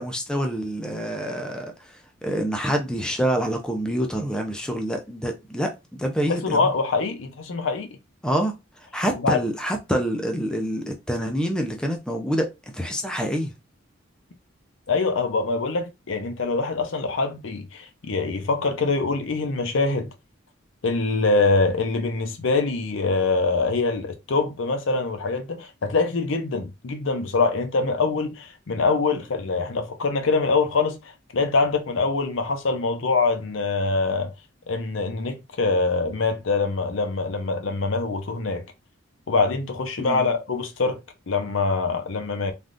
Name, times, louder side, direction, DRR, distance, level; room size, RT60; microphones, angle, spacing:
voice 1, 0.0-6.7 8.2-8.5 8.9-13.5 40.0-40.3, equal, 5° left, 0.4 m, -27 dB
voice 2, 6.3-7.9 9.2-9.4 14.9-20.1 20.8-34.3 34.7-38.6 39.3-41.0 41.3-42.5, left 3 dB, 75° left, 0.6 m, -24 dB
3.4 x 2.3 x 2.5 m
head